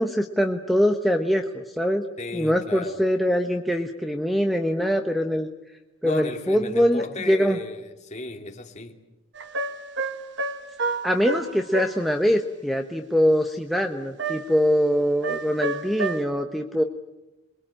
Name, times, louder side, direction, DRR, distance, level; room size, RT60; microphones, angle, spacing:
voice 1, 0.0-2.0 2.3-5.5 6.0-7.6 11.0-16.8, equal, ahead, 2 dB, 1.0 m, -23 dB
voice 2, 2.2-3.0 6.0-9.0, left 2 dB, 35° left, 3 dB, 2.7 m, -35 dB
sound 1, 9.3-12.0 14.2-14.7 15.2-16.2, right 3 dB, 55° right, 1.4 m, -30 dB
27.5 x 22.0 x 8.8 m, 0.99 s
head